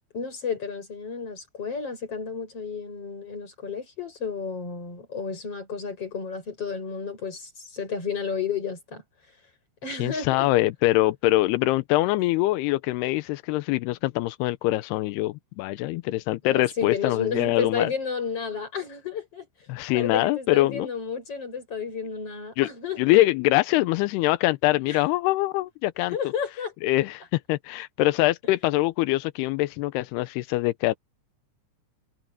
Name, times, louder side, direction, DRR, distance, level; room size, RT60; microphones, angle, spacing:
voice 1, 0.1-9.0 9.8-10.5 16.3-19.5 19.9-23.2 24.9-25.0 26.1-26.7, left 6 dB, 30° left, 8.6 m, -32 dB
voice 2, 9.9-17.9 19.7-20.9 22.6-22.7 23.0-26.2 26.8-31.0, left 18 dB, 85° left, 2.4 m, -24 dB
omnidirectional pair, 5.3 m